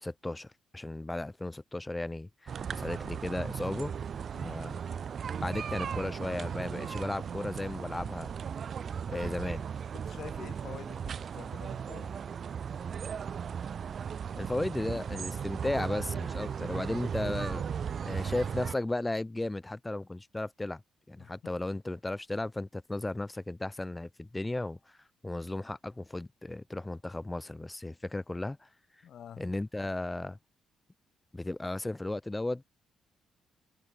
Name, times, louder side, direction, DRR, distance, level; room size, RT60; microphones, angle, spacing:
voice 1, 0.0-3.9 4.4-4.8 5.4-8.3 9.1-9.6 14.3-17.6 18.0-20.8 21.1-24.8 25.2-28.7 29.4-30.4 31.3-32.6, left 2 dB, 15° left, 0.6 m, -35 dB
sound 1, 2.5-18.8, right 7 dB, 50° right, 0.5 m, -36 dB
voice 2, 9.9-12.2 21.2-21.5 29.0-29.4, left 9 dB, 65° left, 4.9 m, -48 dB
cardioid pair, 90°, 0 cm